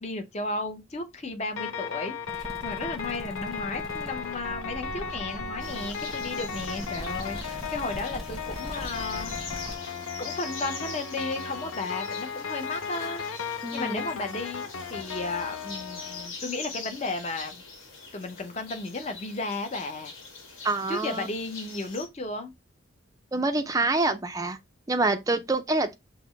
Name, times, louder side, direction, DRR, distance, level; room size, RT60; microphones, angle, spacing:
voice 1, 0.0-9.3 10.2-13.2 13.7-17.6 18.1-20.1 20.9-22.5, left 2 dB, 30° left, 0.6 m, -34 dB
sound 1, 1.6-16.3, left 6 dB, 85° left, 0.6 m, -36 dB
sound 2, 2.3-9.8, equal, ahead, 0.9 m, -41 dB
sound 3, 5.6-22.1, left 4 dB, 70° left, 1.3 m, -43 dB
voice 2, 13.6-14.0 20.6-21.3 23.3-24.6 24.9-25.9, right 2 dB, 15° right, 0.3 m, -26 dB
5.7 x 2.0 x 3.0 m
head